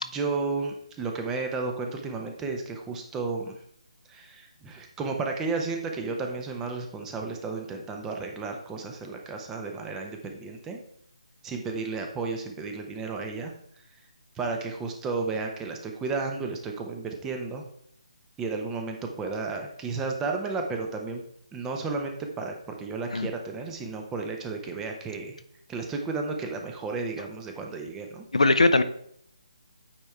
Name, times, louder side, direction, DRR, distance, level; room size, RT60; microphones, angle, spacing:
voice 1, 0.1-3.6 4.1-10.8 11.4-13.5 14.4-17.6 18.4-21.2 21.5-25.4 25.7-28.2, right 4 dB, 10° right, 3 dB, 0.7 m, -33 dB
voice 2, 28.3-28.8, left 2 dB, 75° left, 11 dB, 0.6 m, -20 dB
8.7 x 3.5 x 4.5 m, 0.68 s
figure-of-eight pair, 150°, 4 cm